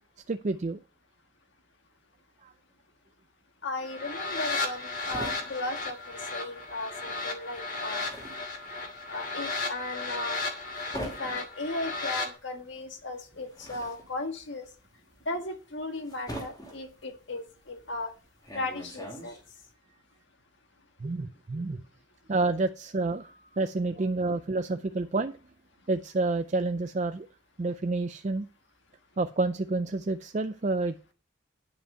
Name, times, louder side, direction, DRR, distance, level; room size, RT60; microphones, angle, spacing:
voice 1, 0.3-0.8 2.4-2.5 21.0-21.8 22.3-25.4 25.9-27.3 27.6-28.5 29.2-31.1, right 3 dB, 35° right, 9 dB, 0.4 m, -29 dB
voice 2, 3.6-8.1 9.1-10.4 11.0-14.7 15.2-18.1 18.5-19.3, left 2 dB, 60° left, 5 dB, 1.6 m, -36 dB
sound 1, 3.8-12.3, left 3 dB, 40° left, 1.8 m, -35 dB
sound 2, 4.3-6.8 7.1-19.7, equal, 20° left, 2.5 m, -43 dB
9.9 x 5.4 x 5.5 m, 0.36 s
head